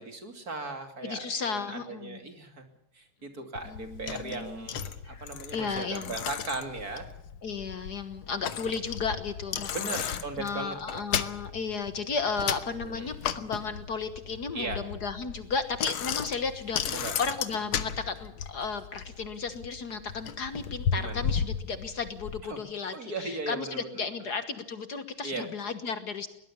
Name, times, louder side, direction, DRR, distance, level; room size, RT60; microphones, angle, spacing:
voice 1, 0.0-2.6 2.9-7.1 9.7-11.0 12.7-13.1 14.5-14.8 16.9-17.2 20.9-21.2 22.4-22.6 22.9-24.1 25.2-25.5, right 3 dB, 45° right, 6 dB, 3.3 m, -38 dB
voice 2, 1.0-2.2 3.7-4.7 5.0-6.2 7.4-26.3, left 5 dB, 55° left, 11 dB, 1.8 m, -34 dB
Bicycle, 3.5-22.4, left 8 dB, 85° left, 2.0 m, -35 dB
22.0 x 18.5 x 7.2 m, 0.84 s
omnidirectional pair, 2.2 m